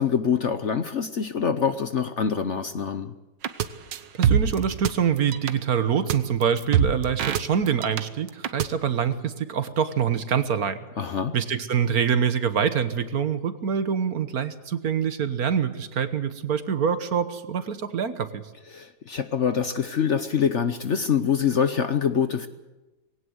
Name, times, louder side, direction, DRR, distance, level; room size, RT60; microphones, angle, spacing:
voice 1, 0.0-3.1 11.0-11.3 18.7-22.5, left 7 dB, 50° left, 11 dB, 1.0 m, -25 dB
sound 1, 3.4-3.7 3.9-4.9 5.2-5.5 6.1-6.2 6.4-8.0 8.3-8.7, right 8 dB, 90° right, 1.7 m, -23 dB
voice 2, 4.1-10.8 11.3-18.4, right 7 dB, 60° right, 12 dB, 1.5 m, -25 dB
20.5 x 17.5 x 7.9 m, 1.1 s
omnidirectional pair, 1.9 m